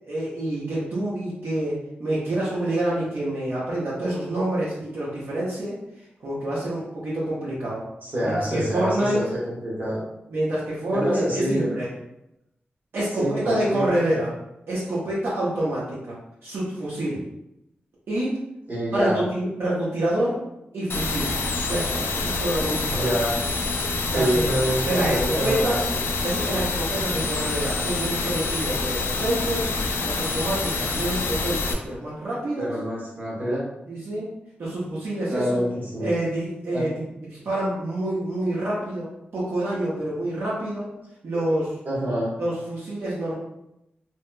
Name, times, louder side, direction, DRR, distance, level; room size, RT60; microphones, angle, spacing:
voice 1, 0.1-1.7 2.0-5.8 6.2-7.8 8.2-9.2 10.3-11.9 12.9-14.3 14.7-16.2 16.4-17.2 18.1-18.3 18.9-20.4 20.7-21.3 21.7-23.1 24.1-24.5 24.9-25.8 26.2-29.7 30.1-32.7 33.9-34.3 34.6-35.6 36.0-40.9 41.2-41.7 42.4-43.3, right 1 dB, 75° right, -7 dB, 0.8 m, -27 dB
voice 2, 8.0-10.0 10.9-11.7 13.2-13.9 18.7-19.2 22.9-23.4 24.0-26.0 32.6-33.6 35.3-36.1 36.7-37.0 41.8-42.3, equal, 50° right, -5 dB, 1.1 m, -26 dB
sound 1, 20.9-31.7, left 3 dB, 75° left, 0.4 m, -27 dB
2.9 x 2.8 x 2.2 m, 0.86 s
wide cardioid pair, 85°, 4 cm